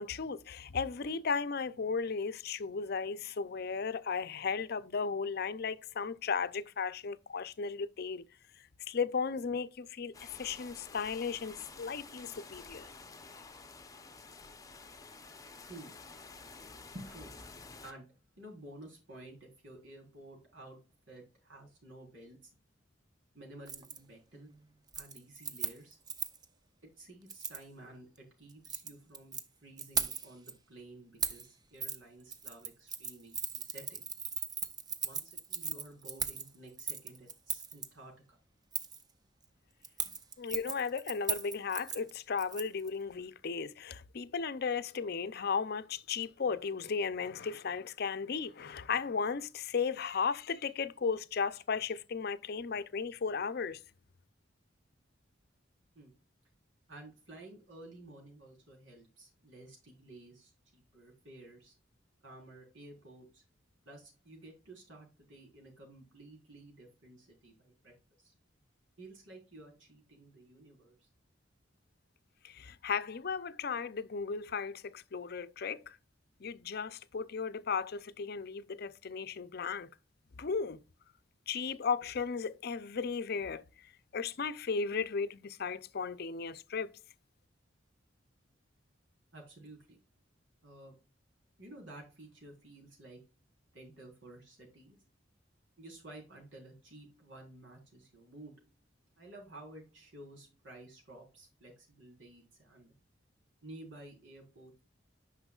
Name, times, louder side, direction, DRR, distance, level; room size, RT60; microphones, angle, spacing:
voice 1, 0.0-8.2 8.9-12.9 40.4-53.8 72.4-76.0 76.4-79.9 80.4-80.8 81.5-83.6 84.1-86.9, left 5 dB, 55° left, 0.5 m, -35 dB
sound 1, 10.1-17.9, left 4 dB, 20° left, 0.7 m, -51 dB
voice 2, 16.9-17.5 17.8-18.1 18.4-20.8 21.1-22.5 23.3-24.5 24.9-26.0 27.0-34.0 35.0-38.4 55.9-56.1 56.9-61.8 62.2-63.4 63.8-68.3 69.0-71.1 89.3-90.0 90.6-91.0 91.6-93.2 93.7-95.0 95.8-98.5 99.2-102.9 103.6-104.8, right 1 dB, 85° right, 4.0 m, -53 dB
Keys jangling, 23.7-24.0 24.3-24.6 24.9-26.5 27.3-27.6 28.5-29.4 29.8-30.5 31.2-31.5 31.8-32.0 32.3-37.9 38.7-39.0 39.8-42.9 43.2-43.3, right 6 dB, 20° right, 0.6 m, -38 dB
9.9 x 5.7 x 2.4 m
head